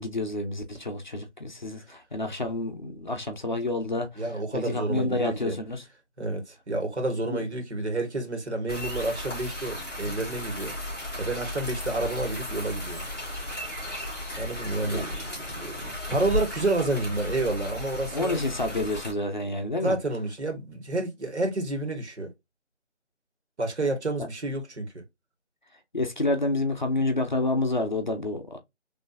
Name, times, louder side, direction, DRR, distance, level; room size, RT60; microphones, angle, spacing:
voice 1, 0.0-4.2 4.5-5.8 7.3-7.4 14.8-15.1 18.1-20.0 25.9-28.6, left 2 dB, 40° left, 0.7 m, -29 dB
voice 2, 4.2-5.6 6.2-10.7 11.2-13.1 14.4-15.3 15.6-18.4 19.8-22.3 23.6-25.0, right 2 dB, 65° right, 2.0 m, -29 dB
sound 1, 8.7-19.1, left 1 dB, ahead, 1.7 m, -35 dB
4.2 x 3.3 x 2.6 m
figure-of-eight pair, 175°, 36 cm